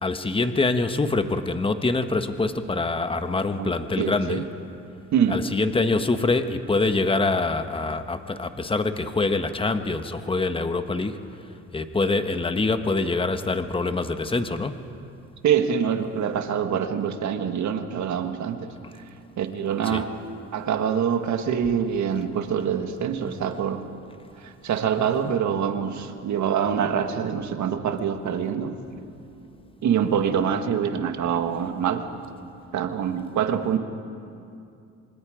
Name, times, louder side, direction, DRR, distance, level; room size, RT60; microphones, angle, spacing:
voice 1, 0.0-4.4 5.3-11.2 11.7-14.8 19.8-20.0, left 3 dB, 15° left, 9 dB, 1.2 m, -25 dB
voice 2, 4.0-4.4 5.1-5.5 15.4-18.7 19.4-20.1 20.5-23.8 24.4-28.8 29.8-32.1 32.7-33.8, right 8 dB, 70° right, 7 dB, 1.7 m, -25 dB
26.0 x 24.5 x 5.1 m, 2.5 s
cardioid pair, 90°, 30 cm